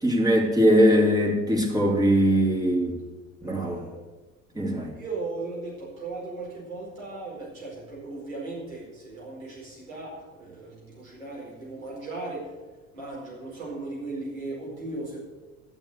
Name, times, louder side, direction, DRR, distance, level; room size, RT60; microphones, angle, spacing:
voice 1, 0.0-2.9 3.4-3.8 4.5-4.9, equal, 10° right, -1 dB, 3.0 m, -21 dB
voice 2, 3.4-4.0 4.9-12.5 12.9-15.2, right 2 dB, 85° right, -5 dB, 4.9 m, -37 dB
12.0 x 7.2 x 8.0 m, 1.2 s
figure-of-eight pair, 65°, 41 cm